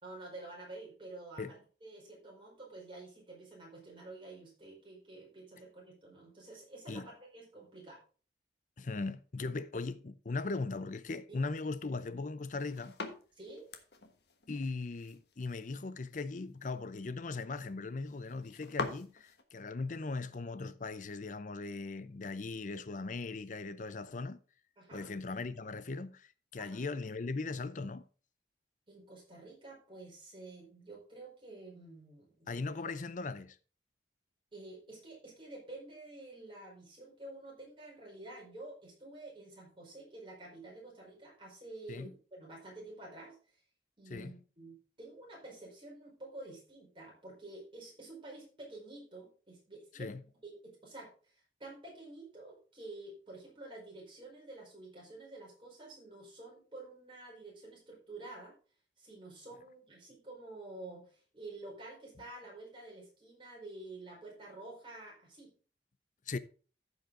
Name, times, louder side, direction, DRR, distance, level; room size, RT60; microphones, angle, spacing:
voice 1, 0.0-8.0 11.3-11.4 13.4-13.7 24.8-25.1 26.6-26.8 28.9-32.6 34.5-43.6 44.0-50.2 50.4-58.5 59.0-65.5, right 2 dB, 30° right, 4.5 m, -49 dB
voice 2, 8.8-13.0 14.5-24.4 24.9-28.1 32.5-33.6 41.9-42.1 44.1-44.3 50.0-50.2 66.3-66.4, left 3 dB, 45° left, 0.6 m, -39 dB
sound 1, 12.4-19.4, left 3 dB, 70° left, 1.3 m, -45 dB
15.0 x 5.4 x 3.7 m
head